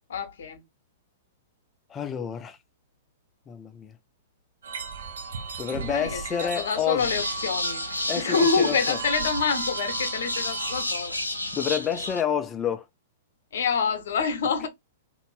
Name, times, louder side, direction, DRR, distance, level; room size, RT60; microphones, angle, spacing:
voice 1, 0.1-0.6 5.7-7.8 8.1-11.2 13.5-14.7, left 5 dB, 60° left, 0.8 m, -27 dB
voice 2, 1.9-2.6 3.5-3.9 5.6-7.1 8.1-9.0 11.5-12.8, left 8 dB, 20° left, 0.4 m, -29 dB
sound 1, 4.6-10.8, right 6 dB, 65° right, 0.9 m, -36 dB
sound 2, 7.0-12.2, left 1 dB, 90° left, 0.6 m, -31 dB
2.7 x 2.5 x 3.1 m
figure-of-eight pair, 105°, 0 cm